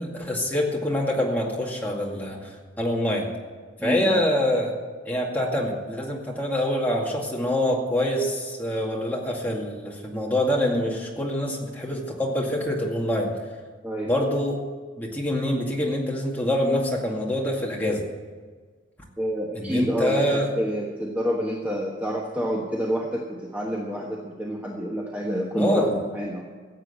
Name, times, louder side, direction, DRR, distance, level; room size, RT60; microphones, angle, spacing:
voice 1, 0.0-3.3 3.8-4.8 5.0-13.3 14.1-14.6 15.0-18.1 19.5-20.5 25.6-26.0, left 1 dB, 10° left, -3 dB, 2.2 m, -25 dB
voice 2, 3.8-4.2 13.8-14.1 19.2-26.5, equal, 10° right, -2 dB, 1.2 m, -28 dB
15.0 x 8.2 x 8.1 m, 1.5 s
head